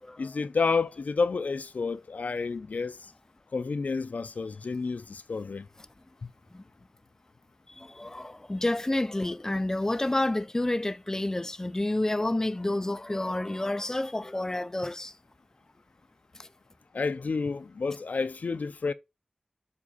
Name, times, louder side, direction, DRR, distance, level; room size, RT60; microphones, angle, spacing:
voice 1, 0.2-3.0 3.5-5.7 6.2-6.3 16.9-18.9, left 4 dB, 80° left, 0.6 m, -30 dB
voice 2, 7.7-15.1 16.4-16.5, left 1 dB, 20° left, 0.5 m, -29 dB
7.4 x 4.6 x 4.1 m
wide cardioid pair, 80°, 3 cm